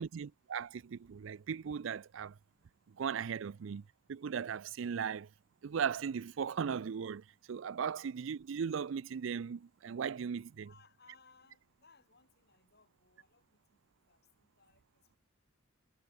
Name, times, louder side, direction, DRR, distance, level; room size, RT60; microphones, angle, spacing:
voice 1, 0.0-2.3 3.0-3.8 4.1-5.3 5.6-10.7, right 7 dB, 65° right, 0.4 m, -37 dB
voice 2, 10.6-15.2, left 4 dB, 50° left, 7.3 m, -66 dB
head